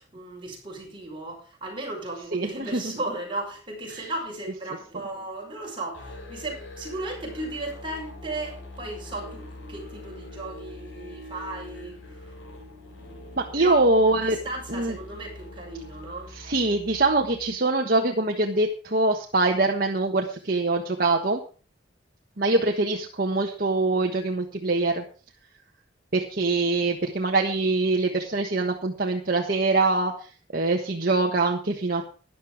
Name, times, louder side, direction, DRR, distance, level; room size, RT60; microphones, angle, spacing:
voice 1, 0.0-12.0 12.9-13.8 14.4-16.3, right 2 dB, 25° right, -1 dB, 5.8 m, -36 dB
voice 2, 2.3-2.8 3.9-4.1 13.4-14.4 14.7-15.0 16.3-21.4 22.4-25.0 26.1-30.1 30.5-32.1, right 2 dB, 50° right, 1 dB, 1.4 m, -24 dB
Musical instrument, 5.9-17.5, left 2 dB, 90° left, 7.3 m, -43 dB
13.5 x 10.5 x 5.0 m, 0.38 s
head